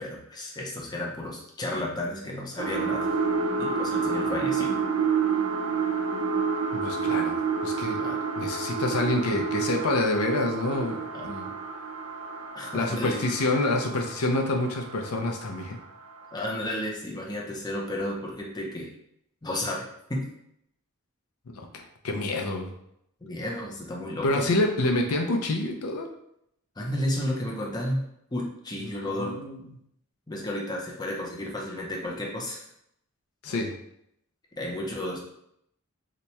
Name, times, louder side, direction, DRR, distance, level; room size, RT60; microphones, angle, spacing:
voice 1, 0.0-3.1 3.6-4.7 8.0-8.2 11.1-11.3 12.5-13.2 16.3-18.9 19.4-20.2 23.2-24.4 26.8-28.0 28.3-29.4 30.3-32.7 34.6-35.2, left 1 dB, 20° left, -2 dB, 0.6 m, -32 dB
sound 1, 2.6-15.7 16.2-16.3, right 5 dB, 65° right, 0.4 m, -29 dB
voice 2, 6.7-8.0 8.4-11.5 12.7-15.8 21.6-22.7 24.2-26.1 29.0-29.6 33.4-33.7, left 2 dB, 85° left, 2 dB, 0.5 m, -27 dB
2.9 x 2.2 x 4.1 m, 0.75 s
head